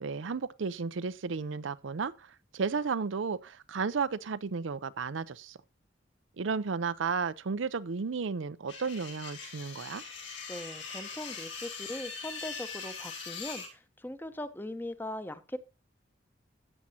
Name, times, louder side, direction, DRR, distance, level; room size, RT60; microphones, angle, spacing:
voice 1, 0.0-5.6 6.4-10.0, right 5 dB, 85° right, 0.5 m, -33 dB
sound 1, 8.7-13.7, left 5 dB, 75° left, 4.6 m, -41 dB
voice 2, 10.5-15.6, left 1 dB, 10° left, 0.8 m, -40 dB
13.5 x 8.8 x 2.8 m
head